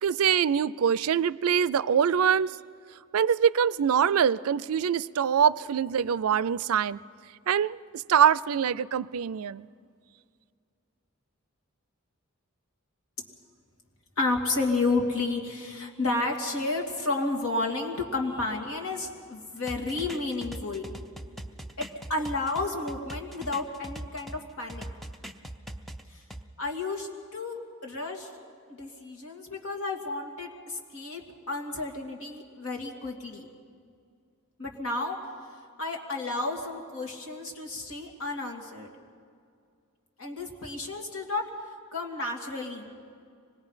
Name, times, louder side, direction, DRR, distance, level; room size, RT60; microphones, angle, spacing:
voice 1, 0.0-2.5 3.1-7.0 7.5-9.7, right 8 dB, 85° right, 19 dB, 0.4 m, -24 dB
voice 2, 14.2-20.9 21.8-24.8 26.1-26.2 26.6-28.3 28.7-33.5 34.6-35.2 35.8-38.9 40.2-41.4 41.9-42.9, left 3 dB, 80° left, 2 dB, 2.5 m, -31 dB
sound 1, 19.7-24.4 24.7-26.4, right 1 dB, ahead, 0.7 m, -41 dB
25.5 x 20.0 x 5.7 m, 2.2 s
head